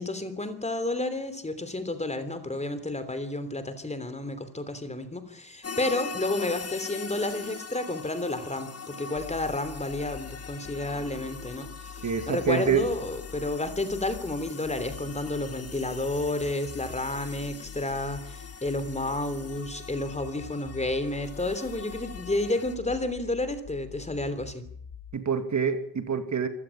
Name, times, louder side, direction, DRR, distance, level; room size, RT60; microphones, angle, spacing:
voice 1, 0.0-24.6, left 2 dB, 15° left, 11 dB, 3.2 m, -31 dB
sound 1, 5.6-22.7, left 5 dB, 35° left, 1.7 m, -42 dB
sound 2, 9.2-25.2, left 8 dB, 80° left, 3.5 m, -45 dB
voice 2, 12.0-12.9 25.1-26.5, right 6 dB, 45° right, 9 dB, 2.4 m, -26 dB
27.0 x 16.5 x 8.6 m, 0.64 s
wide cardioid pair, 170°, 41 cm